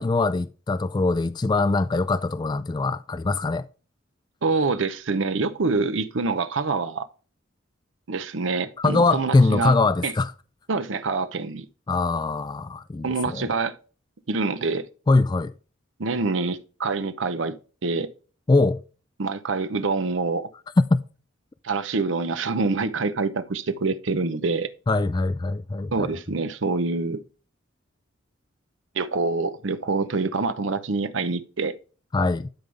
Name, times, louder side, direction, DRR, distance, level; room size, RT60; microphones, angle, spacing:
voice 1, 0.0-3.7 8.8-10.3 11.9-13.1 13.3-13.4 15.1-15.5 18.5-18.8 20.9-21.0 24.9-26.1 32.1-32.5, left 3 dB, 20° left, 0.3 m, -22 dB
voice 2, 4.4-7.1 8.1-9.7 10.0-10.1 10.7-11.7 13.0-13.7 14.3-14.9 16.0-17.6 17.8-18.1 19.2-20.5 21.6-24.7 25.9-27.2 28.9-31.7, right 3 dB, 75° right, 0.7 m, -26 dB
12.0 x 5.4 x 3.3 m
head